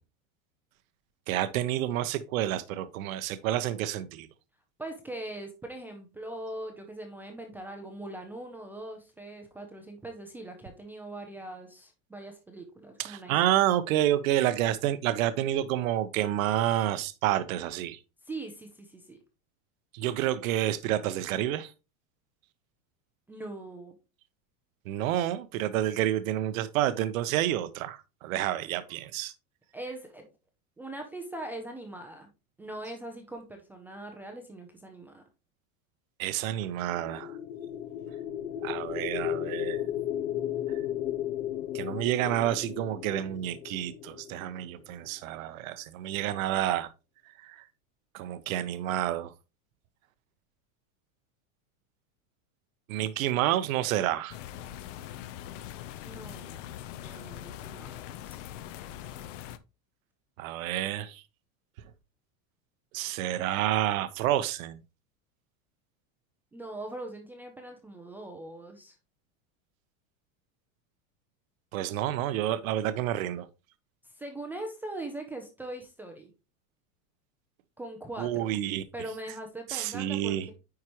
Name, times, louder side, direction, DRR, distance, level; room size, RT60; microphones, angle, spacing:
voice 1, 1.3-4.3 13.0-18.0 19.9-21.7 24.9-29.3 36.2-37.3 38.6-39.9 41.7-46.9 47.4-47.6 48.1-49.3 52.9-54.4 60.4-61.2 62.9-64.8 71.7-73.5 78.2-78.8 79.7-80.4, right 12 dB, 75° right, 0.8 m, -29 dB
voice 2, 4.8-13.4 18.2-19.2 23.3-24.0 29.7-30.3 30.8-32.3 32.6-35.3 56.0-58.4 66.5-69.0 74.0-76.3 77.8-78.5 78.9-80.5, right 1 dB, 5° right, 0.4 m, -41 dB
sound 1, 36.8-44.9, left 11 dB, 85° left, 1.2 m, -35 dB
sound 2, 54.3-59.6, left 11 dB, 65° left, 0.7 m, -42 dB
9.5 x 4.8 x 2.9 m
supercardioid pair, 165°, 41 cm